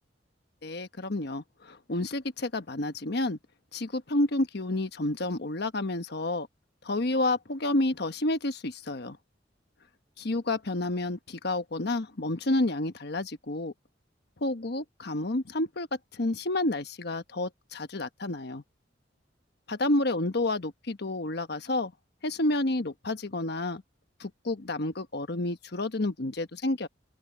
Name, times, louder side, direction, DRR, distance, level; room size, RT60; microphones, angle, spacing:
voice 1, 0.6-3.4 3.7-6.5 6.8-9.2 10.2-13.7 14.4-15.9 16.1-18.6 19.7-21.9 22.2-23.8 24.2-26.9, left 2 dB, 60° left, 1.2 m, -30 dB
open air
head